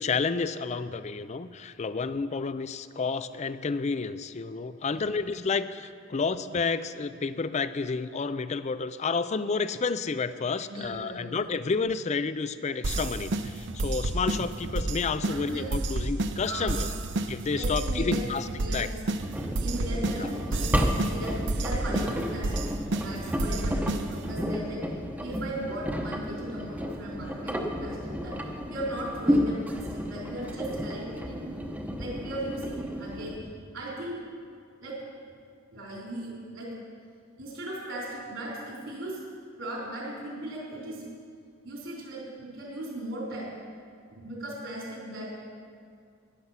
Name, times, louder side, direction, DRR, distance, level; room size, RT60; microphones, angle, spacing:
voice 1, 0.0-16.9 17.3-18.9 20.2-20.3, left 4 dB, 35° left, 13 dB, 0.4 m, -30 dB
voice 2, 10.7-11.4 15.3-15.7 16.5-17.0 17.5-18.3 18.6-18.9 19.6-24.8 25.2-28.4 28.7-31.5 32.0-33.4 33.7-34.2 34.8-35.0 35.7-36.7 37.4-39.2 39.6-41.1 41.6-43.5 44.1-45.3, right 1 dB, 80° right, -4 dB, 3.8 m, -37 dB
sound 1, 12.8-24.3, right 2 dB, 60° right, 0.7 m, -31 dB
Engine, 19.2-33.4, equal, 10° right, 0.8 m, -32 dB
14.0 x 11.0 x 5.7 m, 2.2 s
head